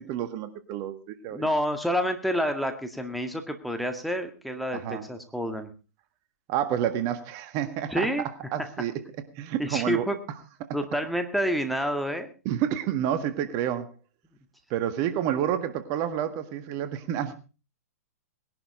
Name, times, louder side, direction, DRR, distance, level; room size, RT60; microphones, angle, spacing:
voice 1, 0.0-1.5 4.7-5.0 6.5-8.1 8.5-8.9 9.4-10.1 12.5-13.9 14.7-17.3, right 10 dB, 40° right, 11 dB, 1.7 m, -29 dB
voice 2, 1.3-5.7 7.9-8.3 9.6-10.2 10.7-12.3, equal, ahead, 6 dB, 2.0 m, -28 dB
19.5 x 11.5 x 4.9 m, 0.35 s
hypercardioid pair, 115°, 8 cm